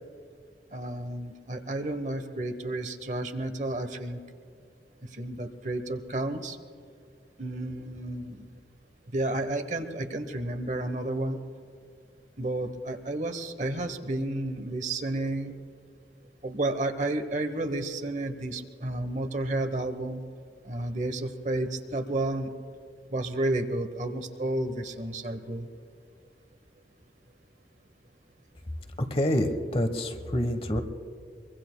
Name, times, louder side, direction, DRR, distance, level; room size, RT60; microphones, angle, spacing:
voice 1, 0.7-4.2 5.0-6.6 7.4-8.5 9.1-11.4 12.4-15.5 16.4-20.2 20.6-22.5 23.1-25.7, right 2 dB, 45° right, 8 dB, 1.0 m, -31 dB
voice 2, 29.1-30.8, equal, 35° left, 8 dB, 1.1 m, -27 dB
24.0 x 23.5 x 2.2 m, 2.3 s
head